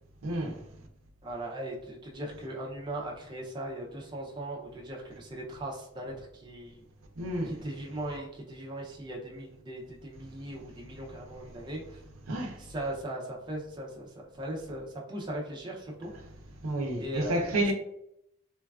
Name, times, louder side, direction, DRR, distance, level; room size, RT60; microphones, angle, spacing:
voice 1, 0.2-0.6 7.2-7.7 12.3-12.6 16.6-17.7, right 1 dB, 85° right, 0.5 m, -30 dB
voice 2, 1.2-6.8 7.4-12.0 12.6-16.1 17.0-17.7, right 1 dB, 20° right, 0.4 m, -39 dB
3.1 x 2.3 x 2.3 m
head